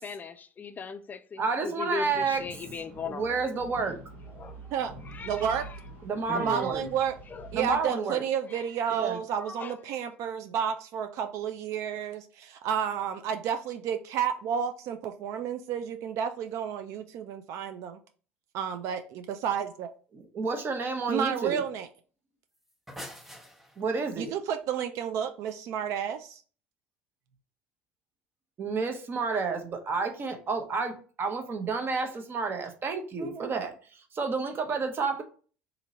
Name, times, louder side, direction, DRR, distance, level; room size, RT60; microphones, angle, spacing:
voice 1, 0.0-3.4 4.4-4.6 5.1-5.7 6.3-6.9 7.3-7.5 9.3-9.7, left 5 dB, 30° left, 0.4 m, -39 dB
voice 2, 1.4-2.4 3.1-4.0 6.0-6.8 7.5-8.2 8.9-9.2 20.1-21.6 23.8-24.3 28.6-33.7 34.1-35.2, right 4 dB, 40° right, 0.9 m, -30 dB
sound 1, 2.0-7.8, right 2 dB, 80° right, 1.5 m, -46 dB
voice 3, 5.3-5.6 6.3-7.1 7.5-18.0 18.5-19.9 21.1-21.9 24.2-26.4 33.2-33.5, right 8 dB, 60° right, 0.4 m, -31 dB
sound 2, 22.5-24.1, equal, 5° right, 0.8 m, -45 dB
2.8 x 2.7 x 4.0 m
hypercardioid pair, 70°, 6 cm